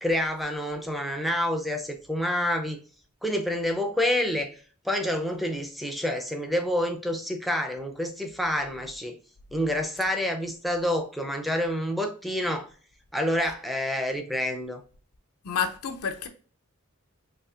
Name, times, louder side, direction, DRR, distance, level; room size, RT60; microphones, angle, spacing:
voice 1, 0.0-2.8 3.2-4.6 4.8-9.2 9.5-12.7 13.1-14.8, left 1 dB, ahead, 0.5 m, -28 dB
voice 2, 15.4-16.3, left 6 dB, 85° left, 0.6 m, -29 dB
4.2 x 3.0 x 2.4 m
head